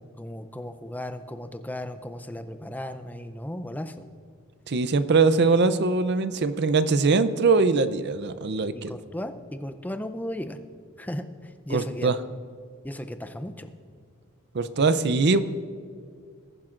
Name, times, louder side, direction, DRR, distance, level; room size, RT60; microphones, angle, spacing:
voice 1, 0.2-4.0 8.7-10.6 11.0-11.2 11.7-12.1 12.8-13.7, left 1 dB, 10° left, 9 dB, 0.5 m, -35 dB
voice 2, 4.7-9.0 11.7-12.2 14.5-15.4, right 4 dB, 50° right, 13 dB, 0.6 m, -22 dB
20.5 x 10.5 x 2.5 m, 2.2 s
head